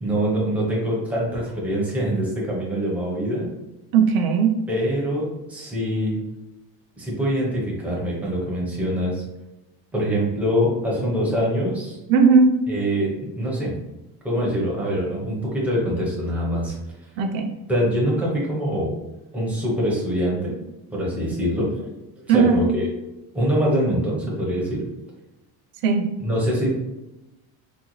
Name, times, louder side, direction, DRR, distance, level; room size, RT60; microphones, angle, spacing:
voice 1, 0.0-3.5 4.7-6.2 7.0-9.2 9.9-12.0 12.7-13.7 14.2-16.8 17.7-18.9 19.3-20.5 20.9-21.9 22.2-22.8 23.3-24.8 26.2-26.7, equal, 5° right, -5 dB, 0.5 m, -24 dB
voice 2, 3.9-4.6 12.1-12.6 17.2-17.5 22.3-22.7 25.8-26.1, right 5 dB, 60° right, 5 dB, 0.6 m, -17 dB
3.8 x 2.1 x 2.9 m, 0.97 s
cardioid pair, 175°, 42 cm